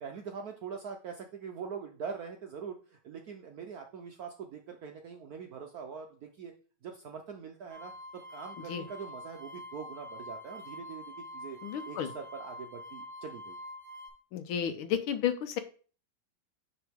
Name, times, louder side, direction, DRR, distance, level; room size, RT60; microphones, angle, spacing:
voice 1, 0.0-6.5 6.8-11.6 11.8-13.6, right 6 dB, 70° right, 3 dB, 0.9 m, -43 dB
sound 1, 7.7-14.1, left 1 dB, 20° right, 2.1 m, -46 dB
voice 2, 11.6-12.1 14.3-15.6, left 9 dB, 75° left, 10 dB, 1.6 m, -32 dB
9.1 x 3.9 x 3.5 m, 0.39 s
omnidirectional pair, 2.3 m